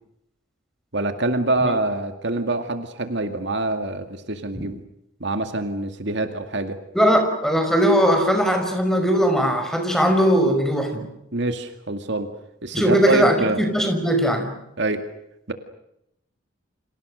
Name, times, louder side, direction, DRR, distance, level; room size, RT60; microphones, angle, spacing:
voice 1, 0.9-4.8 5.2-6.8 11.3-12.3 12.6-13.6 14.8-15.0 15.5-15.6, right 2 dB, 55° right, 7 dB, 2.2 m, -25 dB
voice 2, 6.9-11.0 12.7-14.5, equal, ahead, 5 dB, 5.6 m, -19 dB
30.0 x 27.0 x 6.5 m, 0.82 s
head